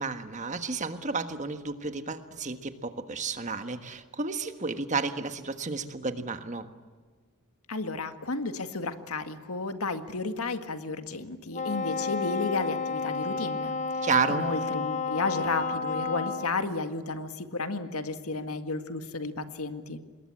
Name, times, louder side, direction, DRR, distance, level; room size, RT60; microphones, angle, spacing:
voice 1, 0.0-6.7 14.0-14.5, right 4 dB, 35° right, 9 dB, 1.5 m, -31 dB
voice 2, 7.7-13.7 14.3-20.0, left 3 dB, 75° left, 8 dB, 1.8 m, -33 dB
Wind instrument woodwind instrument, 11.5-16.6, left 4 dB, 30° left, 1.1 m, -31 dB
26.5 x 21.5 x 8.6 m, 1.4 s
head